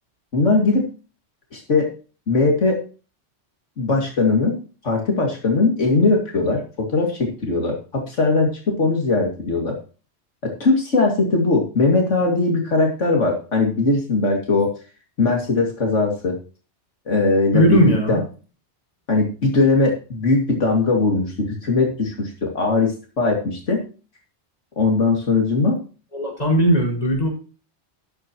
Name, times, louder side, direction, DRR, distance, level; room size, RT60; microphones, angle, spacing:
voice 1, 0.3-0.8 1.5-1.9 2.3-2.8 3.8-4.6 4.8-9.8 10.4-14.7 15.2-16.4 17.1-18.2 19.1-23.8 24.8-25.8, left 3 dB, 80° left, 1 dB, 2.8 m, -20 dB
voice 2, 17.5-18.2 26.1-27.3, equal, 30° left, -1 dB, 5.6 m, -18 dB
13.0 x 10.5 x 3.0 m, 0.36 s
omnidirectional pair, 1.2 m